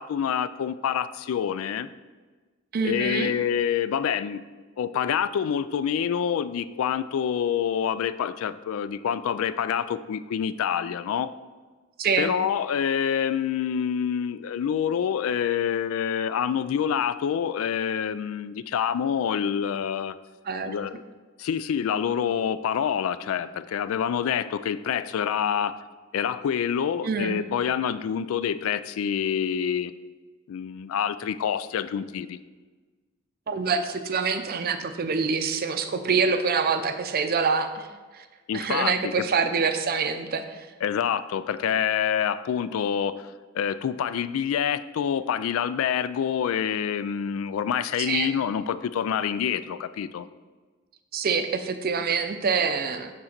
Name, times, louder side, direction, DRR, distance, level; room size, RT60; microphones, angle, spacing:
voice 1, 0.0-1.9 2.8-4.4 4.8-11.3 12.2-20.2 20.6-21.0 21.4-25.8 26.1-29.9 30.5-32.4 38.5-39.3 40.8-50.3, left 8 dB, 75° left, 14 dB, 0.3 m, -27 dB
voice 2, 2.7-3.3 12.0-12.3 20.5-20.8 27.0-27.4 33.5-37.9 38.1-38.2 38.5-40.7 48.0-48.3 51.1-53.1, right 5 dB, 45° right, 8 dB, 0.5 m, -26 dB
6.3 x 3.9 x 5.9 m, 1.4 s
head